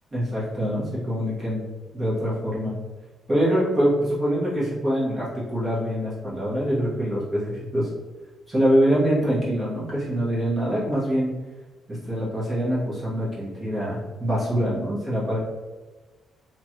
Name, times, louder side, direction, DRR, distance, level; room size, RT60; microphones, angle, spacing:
voice 1, 0.1-1.6 1.9-2.7 3.3-7.9 8.5-11.3 11.9-15.4, equal, 20° right, -8 dB, 1.1 m, -24 dB
2.9 x 2.4 x 2.9 m, 1.3 s
cardioid pair, 150°, 0 cm